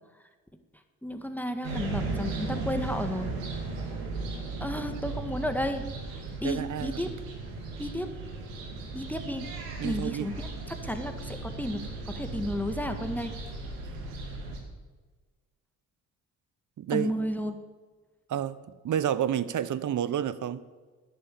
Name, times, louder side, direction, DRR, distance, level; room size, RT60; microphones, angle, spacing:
voice 1, 1.0-3.3 4.6-5.8 6.4-7.1 7.8-8.1 8.9-9.5 9.8-13.3 16.9-17.5, equal, 5° left, 1.8 m, -32 dB
sound 1, 1.6-14.6, right 3 dB, 85° right, 2.5 m, -36 dB
voice 2, 6.4-7.0 9.8-10.3 16.8-17.1 18.3-18.6 18.8-20.6, right 10 dB, 45° right, 1.0 m, -30 dB
11.0 x 10.5 x 8.4 m
hypercardioid pair, 50°, 40 cm